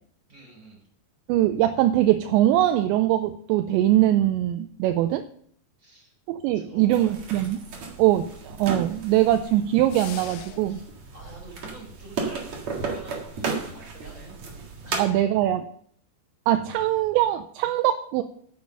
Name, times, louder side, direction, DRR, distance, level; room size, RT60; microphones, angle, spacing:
voice 1, 0.3-0.8 5.8-6.1 6.5-7.2 10.6-12.5 12.8-14.4 14.8-15.2, right 2 dB, 20° right, -1 dB, 4.1 m, -47 dB
voice 2, 1.3-5.2 6.3-7.6 8.0-10.8 15.0-15.6 16.5-18.2, right 13 dB, 85° right, 8 dB, 2.7 m, -22 dB
sound 1, 6.9-15.1, right 4 dB, 55° right, 2.2 m, -34 dB
sound 2, 9.9-10.9, left 10 dB, 75° left, 2.7 m, -41 dB
9.4 x 7.0 x 6.6 m, 0.63 s
omnidirectional pair, 5.4 m